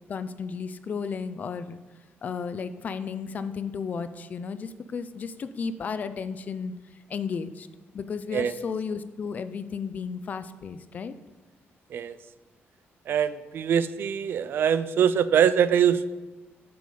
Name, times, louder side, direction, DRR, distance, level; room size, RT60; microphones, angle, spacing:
voice 1, 0.1-1.8 2.2-6.7 7.1-7.7 7.9-11.1, left 6 dB, 35° left, 12 dB, 0.4 m, -33 dB
voice 2, 13.1-16.1, right 8 dB, 55° right, 15 dB, 0.4 m, -23 dB
7.7 x 4.9 x 5.4 m, 1.1 s
cardioid pair, 165°, 4 cm